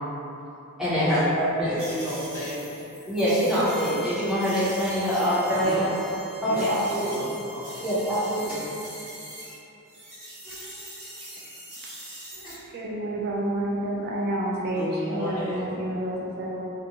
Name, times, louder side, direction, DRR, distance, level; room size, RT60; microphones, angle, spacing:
voice 1, 0.8-1.7 3.0-5.9 6.4-7.3 7.8-8.6, equal, ahead, -13 dB, 0.8 m, -24 dB
voice 2, 1.6-2.8 5.5-5.9 6.4-6.6 7.1-7.8 14.7-15.6, left 1 dB, 80° left, -12 dB, 1.2 m, -34 dB
sound 1, 1.8-9.6 9.9-12.5, right 1 dB, 75° right, 1.0 m, -43 dB
Bowed string instrument, 3.5-8.7, left 1 dB, 55° left, 0.8 m, -43 dB
sound 2, 4.5-4.9 6.5-6.7 8.4-8.6 10.4-10.9 12.2-12.7, right 1 dB, 20° left, 1.0 m, -43 dB
voice 3, 12.7-16.6, right 1 dB, 45° right, -4 dB, 0.4 m, -29 dB
2.6 x 2.2 x 2.8 m, 2.8 s
head